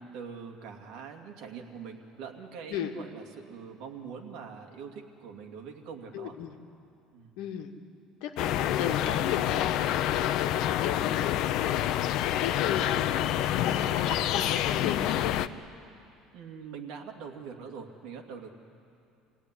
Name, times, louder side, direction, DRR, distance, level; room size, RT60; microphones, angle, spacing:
voice 1, 0.0-6.3 7.1-7.3 16.3-18.5, right 6 dB, 60° right, 3 dB, 2.6 m, -43 dB
voice 2, 6.1-6.5 7.4-7.7 8.2-13.3 13.6-15.4, left 9 dB, 75° left, 4 dB, 2.1 m, -35 dB
sound 1, 8.4-15.5, left 12 dB, 50° left, 0.6 m, -27 dB
28.0 x 17.5 x 9.9 m, 2.5 s
cardioid pair, 175°, 0 cm